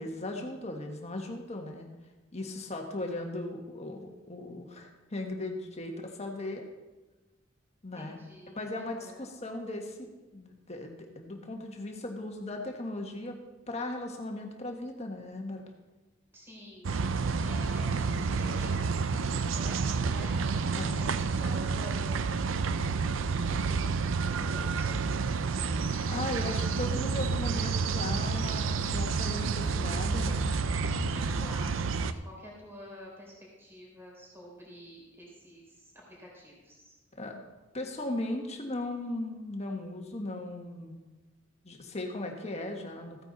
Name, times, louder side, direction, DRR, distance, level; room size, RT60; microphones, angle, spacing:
voice 1, 0.0-1.9 2.3-6.6 7.8-8.2 8.5-13.4 13.7-15.7 20.7-21.0 26.1-30.6 37.1-37.4 37.7-41.0 41.6-43.2, left 2 dB, 35° left, 3 dB, 1.5 m, -37 dB
voice 2, 7.9-9.3 16.3-16.9 17.4-18.8 19.1-23.6 24.2-25.1 30.9-33.3 33.6-37.0, equal, 15° right, -4 dB, 3.6 m, -49 dB
sound 1, 16.8-32.1, right 4 dB, 90° right, 0.5 m, -29 dB
15.0 x 9.2 x 4.1 m, 1.2 s
head